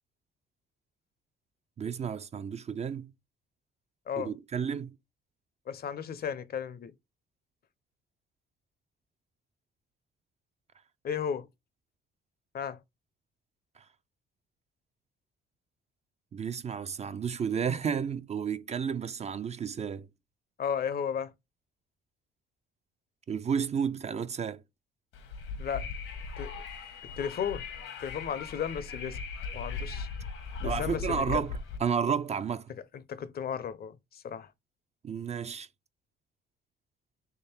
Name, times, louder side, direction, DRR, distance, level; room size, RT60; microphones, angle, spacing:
voice 1, 1.8-3.1 4.2-5.0 16.3-20.1 23.3-24.6 30.6-32.7 35.0-35.7, right 7 dB, 35° right, 0.4 m, -32 dB
voice 2, 5.7-6.9 11.0-11.5 12.5-12.8 20.6-21.3 25.6-25.9 26.4-26.6 27.2-27.7 28.0-29.2 29.5-30.1 30.6-31.4 33.1-34.5, left 8 dB, 50° left, 0.6 m, -34 dB
Wind, 25.1-31.8, left 5 dB, 85° left, 1.2 m, -38 dB
3.7 x 3.3 x 4.2 m
cardioid pair, 90°, 20 cm